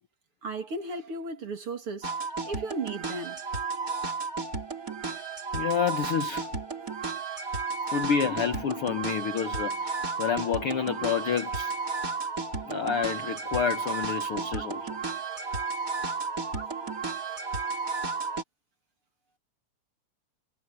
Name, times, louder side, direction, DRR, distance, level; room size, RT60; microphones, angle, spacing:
voice 1, 0.4-2.1 2.5-3.4, right 3 dB, 45° right, 2.8 m, -35 dB
sound 1, 2.0-18.4, right 4 dB, 25° right, 3.3 m, -33 dB
voice 2, 5.5-6.5 7.9-11.7 12.6-14.9, left 7 dB, 65° left, 1.4 m, -29 dB
omnidirectional pair, 4.0 m